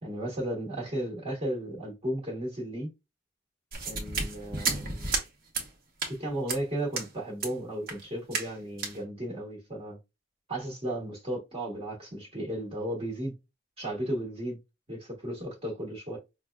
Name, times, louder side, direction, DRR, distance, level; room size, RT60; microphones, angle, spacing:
voice 1, 0.0-2.9 3.8-5.1 6.1-10.0 10.5-13.3 13.8-14.6 14.9-16.2, right 1 dB, 35° right, 1.4 m, -34 dB
sound 1, 3.7-5.3 5.5-5.7 6.0-6.2 6.5-6.6 6.9-7.1 7.4-7.5 7.9-8.0 8.3-8.5 8.8-9.0, right 4 dB, 55° right, 1.2 m, -32 dB
5.7 x 2.3 x 2.3 m
head